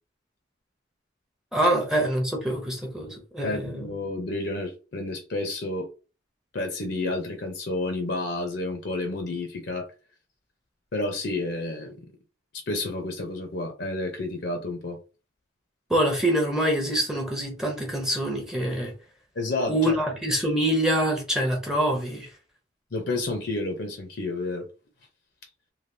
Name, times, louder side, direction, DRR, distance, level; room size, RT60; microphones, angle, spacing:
voice 1, 1.5-3.9 15.9-18.9 19.7-22.3, right 1 dB, 5° right, 0.7 m, -25 dB
voice 2, 3.4-5.9 6.5-9.9 10.9-12.0 12.5-15.0 19.4-20.0 22.9-24.7, left 2 dB, 55° left, 0.6 m, -30 dB
3.3 x 2.4 x 2.6 m
head